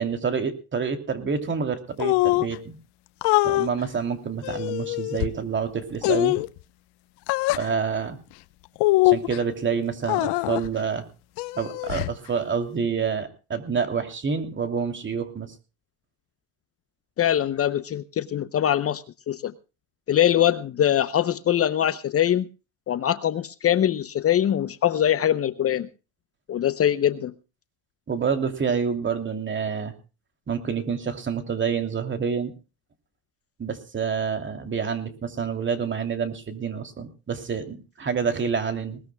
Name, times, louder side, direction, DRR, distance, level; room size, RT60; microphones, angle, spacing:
voice 1, 0.0-2.8 3.4-6.4 7.6-8.2 9.0-11.0 11.6-15.5 28.1-29.9 30.5-32.5 33.6-39.0, right 6 dB, 30° right, 7 dB, 2.9 m, -28 dB
sound 1, 2.0-2.5 3.2-3.7 4.4-5.3 6.0-6.5 7.3-7.7 8.8-9.4 10.0-10.7 11.4-12.2, left 20 dB, 75° left, 0.9 m, -23 dB
voice 2, 17.2-19.5 20.1-22.5 22.9-25.9 26.5-27.3, left 10 dB, 35° left, 13 dB, 0.7 m, -23 dB
20.5 x 19.5 x 2.2 m, 0.33 s
cardioid pair, 115°, 41 cm